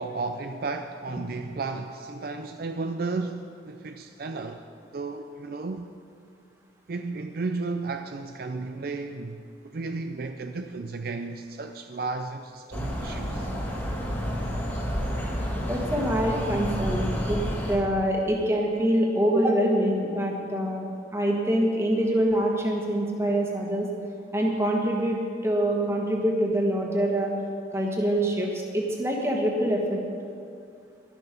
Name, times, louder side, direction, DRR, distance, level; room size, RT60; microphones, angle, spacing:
voice 1, 0.0-4.6 4.9-5.9 6.9-13.5, right 3 dB, 55° right, 0.4 m, -33 dB
sound 1, 12.7-17.8, equal, 10° left, 1.4 m, -30 dB
voice 2, 15.7-20.9 21.1-23.9 24.3-27.3 27.7-30.0, right 1 dB, 15° right, 1.4 m, -25 dB
12.0 x 11.0 x 5.2 m
head